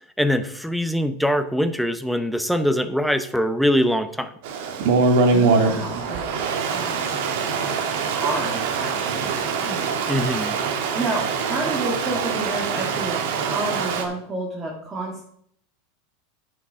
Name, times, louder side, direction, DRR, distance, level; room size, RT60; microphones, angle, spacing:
voice 1, 0.2-4.3 10.1-10.6, equal, ahead, 9 dB, 0.7 m, -22 dB
Stream, 4.4-14.0, right 4 dB, 65° right, 1.6 m, -23 dB
voice 2, 5.3-6.2 6.7-7.2 8.1-9.4 9.6-9.9 10.9-15.2, right 2 dB, 20° right, -2 dB, 1.7 m, -30 dB
9.8 x 6.1 x 5.5 m, 0.69 s
supercardioid pair, 140°, 0 cm